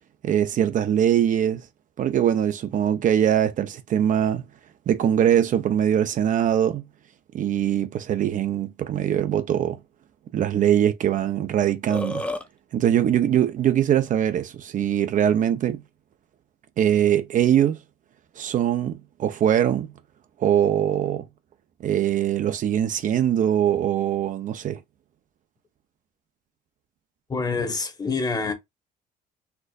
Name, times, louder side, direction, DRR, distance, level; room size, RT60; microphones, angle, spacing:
voice 1, 0.2-1.6 2.0-4.4 4.9-6.8 7.3-9.8 10.3-12.2 12.7-15.8 16.8-17.8 18.4-19.9 20.4-21.2 21.8-24.8, right 10 dB, 50° right, 0.5 m, -22 dB
Burping eructation, 11.3-11.4 11.6-12.5, left 1 dB, 5° left, 0.6 m, -30 dB
voice 2, 27.3-28.5, left 4 dB, 20° left, 1.0 m, -26 dB
4.3 x 2.5 x 2.3 m
cardioid pair, 110°, 17 cm